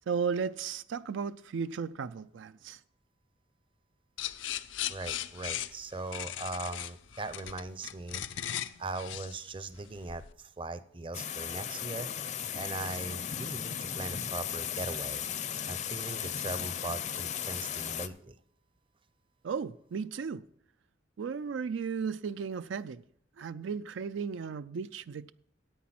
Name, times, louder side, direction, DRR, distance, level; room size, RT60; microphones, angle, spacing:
voice 1, 0.1-2.8 19.4-20.4 21.2-23.0 23.4-25.3, right 6 dB, 85° right, 14 dB, 0.4 m, -35 dB
sound 1, 4.2-10.3, left 11 dB, 85° left, 0.5 m, -38 dB
voice 2, 4.9-12.1 12.5-15.2 15.7-18.4, right 3 dB, 30° right, 13 dB, 0.6 m, -40 dB
sound 2, 11.1-18.1, left 9 dB, 40° left, 0.5 m, -36 dB
10.0 x 8.4 x 5.9 m, 0.66 s
head